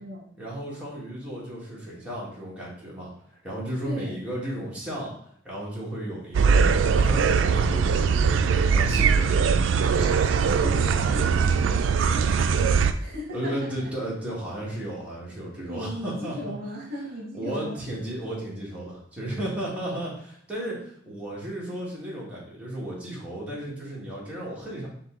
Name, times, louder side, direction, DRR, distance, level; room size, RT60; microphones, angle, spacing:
voice 1, 0.4-5.1 5.4-10.2 13.3-16.6 17.3-24.9, right 1 dB, 5° right, -6 dB, 1.5 m, -34 dB
sound 1, 6.3-12.9, right 5 dB, 80° right, 0.3 m, -21 dB
voice 2, 10.6-13.9 15.6-17.8, equal, 55° right, -2 dB, 1.0 m, -37 dB
5.3 x 2.7 x 3.6 m, 0.65 s
head